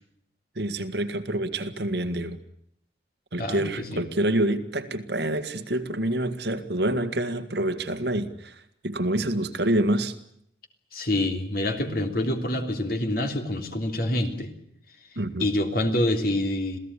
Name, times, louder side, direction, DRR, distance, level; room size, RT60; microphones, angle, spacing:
voice 1, 0.6-2.4 3.3-8.6 8.8-10.1 15.2-15.5, right 1 dB, 65° right, 10 dB, 1.9 m, -27 dB
voice 2, 3.4-4.0 10.9-14.5 15.4-16.8, left 1 dB, 50° left, 5 dB, 3.2 m, -26 dB
27.0 x 17.0 x 9.9 m, 0.70 s
head